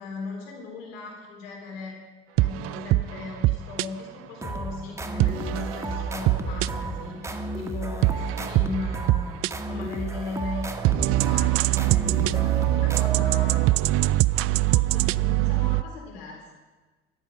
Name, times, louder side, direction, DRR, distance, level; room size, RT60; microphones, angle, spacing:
voice 1, 0.0-1.9 2.4-10.7 11.0-13.7 14.6-16.5, left 4 dB, 75° left, -1 dB, 4.1 m, -38 dB
sound 1, 2.4-3.9 5.2-7.0 8.0-9.5 10.2-15.8, right 18 dB, 50° right, 0.4 m, -23 dB
sound 2, 4.4-13.9, right 2 dB, 10° right, 1.4 m, -33 dB
14.0 x 9.7 x 6.3 m, 1.2 s
hypercardioid pair, 65°, 29 cm